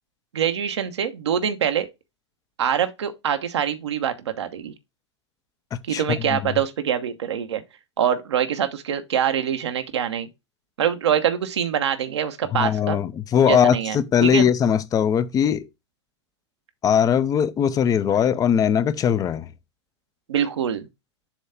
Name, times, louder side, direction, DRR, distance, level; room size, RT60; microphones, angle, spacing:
voice 1, 0.3-1.9 2.6-4.7 5.9-7.6 8.0-10.3 10.8-13.0 13.5-14.5 20.3-20.9, right 9 dB, 70° right, 1.1 m, -24 dB
voice 2, 12.5-15.7 16.8-19.5, left 8 dB, 25° left, 0.6 m, -20 dB
7.2 x 3.2 x 5.8 m
figure-of-eight pair, 95°, 15 cm